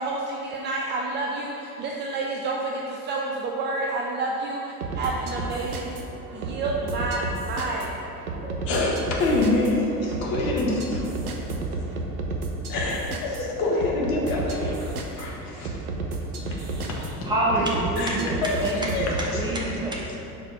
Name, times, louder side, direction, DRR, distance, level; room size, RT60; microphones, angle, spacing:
voice 1, 0.0-6.0 6.3-7.9, right 2 dB, 25° right, -1 dB, 0.4 m, -29 dB
sound 1, 4.8-19.5, right 2 dB, 70° right, 0.9 m, -32 dB
voice 2, 8.4-11.0 12.7-15.7 16.5-17.3 17.5-17.6 18.0-18.6 18.9-19.3, left 2 dB, 50° left, -2 dB, 1.4 m, -26 dB
voice 3, 16.3-16.9 17.2-20.1, right 1 dB, 10° right, -4 dB, 1.1 m, -28 dB
5.0 x 4.5 x 5.9 m, 2.9 s
figure-of-eight pair, 70°, 46 cm